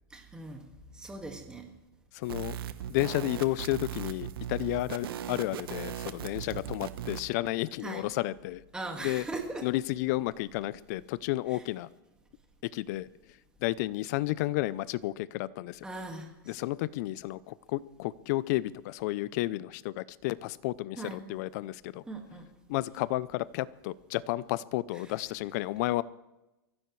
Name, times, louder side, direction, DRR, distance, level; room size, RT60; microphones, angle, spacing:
voice 1, 0.1-0.6 1.0-1.7 7.8-8.1 8.7-9.7 11.5-11.6 15.8-16.3 21.0-21.2 22.1-22.5 25.0-25.1, right 2 dB, 5° right, 3 dB, 1.9 m, -39 dB
voice 2, 2.1-2.6 2.9-8.6 9.0-9.2 9.6-11.9 12.6-13.1 13.6-15.8 16.5-22.0 22.7-26.0, left 17 dB, 45° left, 19 dB, 0.6 m, -32 dB
sound 1, 2.2-7.3, right 10 dB, 70° right, 1.1 m, -38 dB
23.5 x 15.0 x 3.3 m, 0.98 s
supercardioid pair, 150°, 13 cm